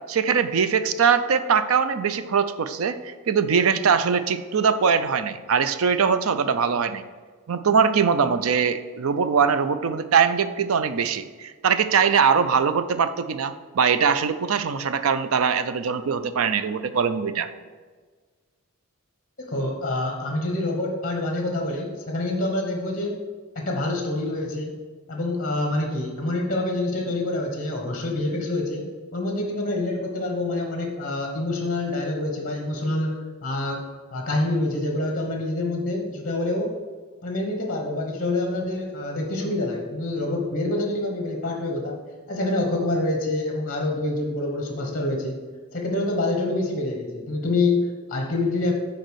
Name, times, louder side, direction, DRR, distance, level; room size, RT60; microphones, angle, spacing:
voice 1, 0.1-7.0 7.5-17.5, right 6 dB, 75° right, 11 dB, 0.5 m, -22 dB
voice 2, 19.4-23.2 23.5-24.7 25.1-33.8 34.1-36.7 37.2-42.0 42.3-45.4 45.7-48.7, left 2 dB, 40° left, 2 dB, 1.1 m, -26 dB
6.6 x 4.2 x 6.3 m, 1.5 s
head